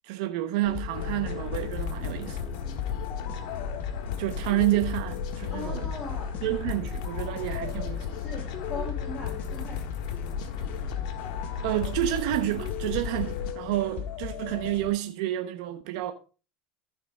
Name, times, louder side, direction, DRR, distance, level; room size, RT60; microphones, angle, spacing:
voice 1, 0.0-2.4 4.2-5.9 6.4-8.1 11.6-16.1, right 15 dB, 75° right, 1.0 m, -29 dB
sound 1, 0.6-14.9, left 8 dB, 55° left, 1.7 m, -38 dB
sound 2, 0.9-13.5, left 6 dB, 80° left, 1.7 m, -35 dB
voice 2, 5.5-6.3 8.1-8.4 8.7-10.2, left 3 dB, 30° left, 3.8 m, -39 dB
14.5 x 5.5 x 3.7 m
supercardioid pair, 95°, 4 cm